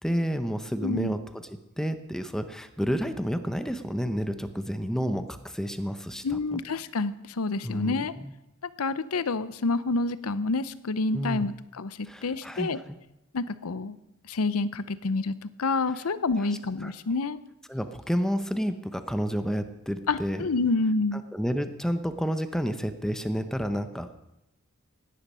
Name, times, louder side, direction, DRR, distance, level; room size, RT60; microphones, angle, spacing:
voice 1, 0.0-6.6 7.6-8.3 11.1-11.5 12.0-13.0 16.8-16.9 17.7-20.4 21.1-24.1, equal, ahead, 9 dB, 0.8 m, -30 dB
voice 2, 0.8-1.1 6.2-8.1 8.8-12.8 13.3-14.0 14.3-17.4 20.1-21.2, left 3 dB, 85° left, 15 dB, 0.7 m, -28 dB
16.5 x 10.0 x 5.5 m, 0.92 s
head